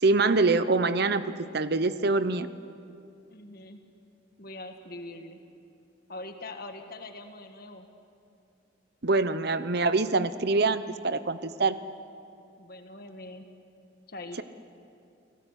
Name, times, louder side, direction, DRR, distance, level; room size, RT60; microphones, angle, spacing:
voice 1, 0.0-2.5 9.0-11.8, right 3 dB, 55° right, 13 dB, 0.9 m, -25 dB
voice 2, 3.3-3.8 4.4-5.4 6.1-7.9 12.6-13.5 14.1-14.4, left 2 dB, 50° left, 5 dB, 1.7 m, -42 dB
29.5 x 18.0 x 8.2 m, 2.6 s
head